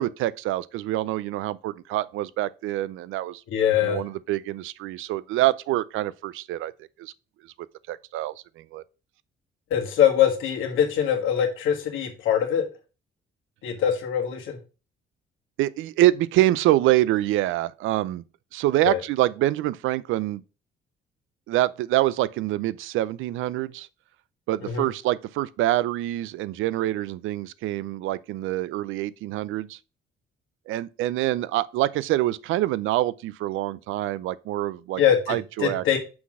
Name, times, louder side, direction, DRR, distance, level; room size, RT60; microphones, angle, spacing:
voice 1, 0.0-3.4 3.8-6.7 7.0-7.1 7.9-8.8 15.6-18.2 18.5-20.4 21.5-23.9 24.5-29.8 30.7-35.0 35.3-35.8, right 15 dB, 90° right, 0.4 m, -25 dB
voice 2, 3.5-4.0 9.7-12.6 13.6-14.6 18.8-19.0 24.7-24.9 35.0-36.0, left 9 dB, 85° left, 1.6 m, -23 dB
6.0 x 3.9 x 6.1 m
cardioid pair, 90°, 20 cm